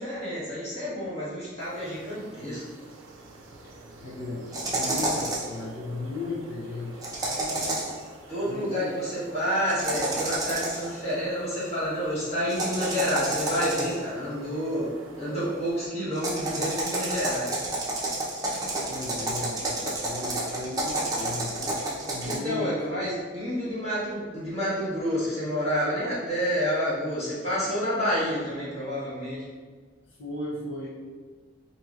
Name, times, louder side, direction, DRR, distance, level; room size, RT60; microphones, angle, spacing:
voice 1, 0.0-2.6 8.3-14.9 15.2-17.5 22.2-29.4, equal, 35° left, -10 dB, 1.4 m, -29 dB
sound 1, 1.6-15.9, right 2 dB, 90° right, 0.5 m, -45 dB
voice 2, 4.0-7.8 8.5-9.1 18.9-22.7 30.2-30.9, left 2 dB, 75° left, -4 dB, 0.7 m, -36 dB
sound 2, 4.5-5.6 7.0-8.0 9.7-10.9 12.5-14.1 16.1-22.3, right 2 dB, 20° right, 0.6 m, -30 dB
4.2 x 2.7 x 2.4 m, 1.5 s
head